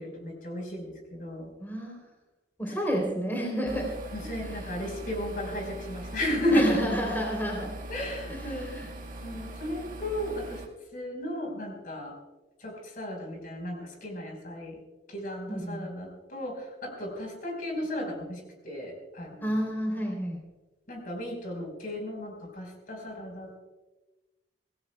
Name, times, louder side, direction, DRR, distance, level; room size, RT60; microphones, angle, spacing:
voice 1, 0.0-1.5 4.1-6.9 7.9-8.7 9.2-10.6 10.9-12.1 12.6-14.8 15.1-19.5 20.9-23.6, equal, 50° left, 2 dB, 4.6 m, -33 dB
voice 2, 1.6-2.0 2.6-3.9 4.4-4.8 6.5-7.7 8.3-8.9 15.5-15.9 19.4-20.4, equal, 10° left, 0 dB, 3.4 m, -31 dB
sound 1, 3.7-10.7, right 1 dB, 50° right, 1.7 m, -41 dB
25.0 x 17.5 x 2.3 m, 1.1 s
head